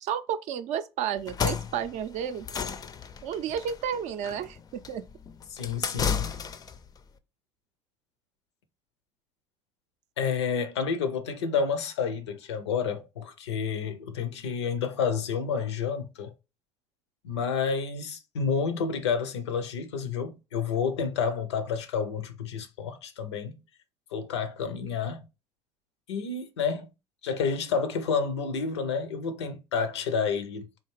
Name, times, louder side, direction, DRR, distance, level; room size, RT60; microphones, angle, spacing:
voice 1, 0.0-2.5 3.2-5.0, right 8 dB, 60° right, 0.4 m, -32 dB
sound 1, 1.2-6.8, left 6 dB, 25° left, 0.4 m, -33 dB
voice 2, 5.5-6.3 10.2-16.3 17.2-23.5 24.1-25.2 26.1-26.9 27.2-30.7, left 6 dB, 85° left, 0.5 m, -30 dB
3.4 x 2.5 x 3.1 m
hypercardioid pair, 60°, 14 cm